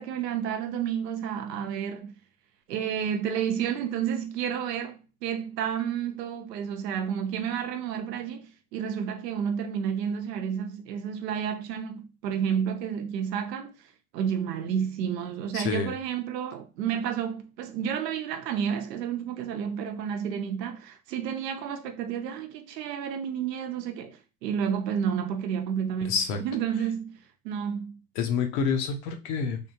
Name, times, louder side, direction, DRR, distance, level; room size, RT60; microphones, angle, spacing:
voice 1, 0.0-2.1 2.7-28.0, right 8 dB, 90° right, 0.8 m, -31 dB
voice 2, 15.5-15.9 26.1-26.4 28.2-29.6, left 5 dB, 60° left, 0.9 m, -27 dB
3.5 x 2.3 x 2.8 m
supercardioid pair, 110°, 47 cm